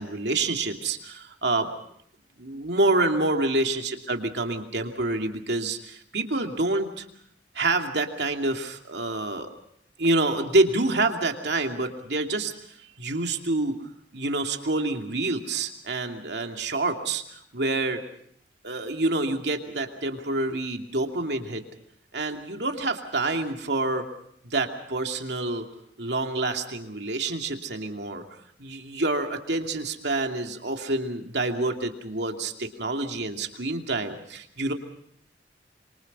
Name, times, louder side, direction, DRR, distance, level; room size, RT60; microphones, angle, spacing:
voice 1, 0.0-1.7 2.4-7.1 7.5-9.5 10.0-12.5 13.0-13.8 14.1-18.0 18.6-21.6 22.1-24.1 24.4-25.7 26.0-28.3 28.6-34.7, right 2 dB, 70° right, 4 dB, 2.7 m, -27 dB
27.0 x 24.5 x 5.5 m, 0.67 s
head